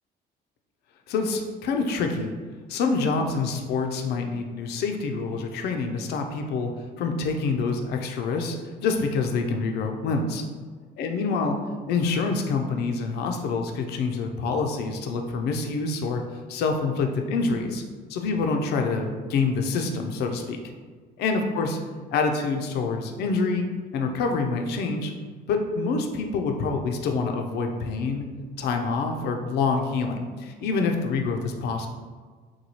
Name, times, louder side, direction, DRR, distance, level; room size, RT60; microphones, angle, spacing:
voice 1, 1.1-2.3 2.7-6.7 7.0-8.6 8.8-10.4 11.0-11.6 11.9-16.2 16.5-17.8 18.1-20.6 21.2-21.8 22.1-23.7 23.9-25.1 25.5-28.3 28.6-31.9, left 4 dB, 75° left, 4 dB, 0.5 m, -26 dB
3.0 x 2.3 x 4.1 m, 1.5 s
cardioid pair, 110°, 17 cm